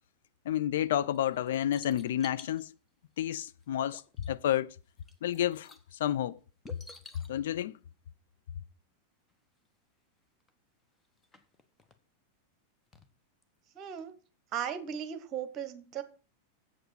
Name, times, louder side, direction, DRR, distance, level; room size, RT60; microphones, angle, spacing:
voice 1, 0.5-2.7 3.2-4.0 4.3-4.7 5.2-6.4 7.3-7.7, left 11 dB, 60° left, 0.5 m, -30 dB
sound 1, 1.1-2.6 3.6-3.7 3.9-4.5 4.8-5.9 6.6-7.3 9.3-9.4 9.7-9.8 10.4-10.5 11.0-12.0 12.9-13.1 13.4-13.5, left 2 dB, 15° left, 1.2 m, -52 dB
voice 2, 13.7-14.2 14.5-16.0, right 8 dB, 35° right, 1.3 m, -37 dB
8.0 x 7.9 x 5.6 m
figure-of-eight pair, 90°, 0 cm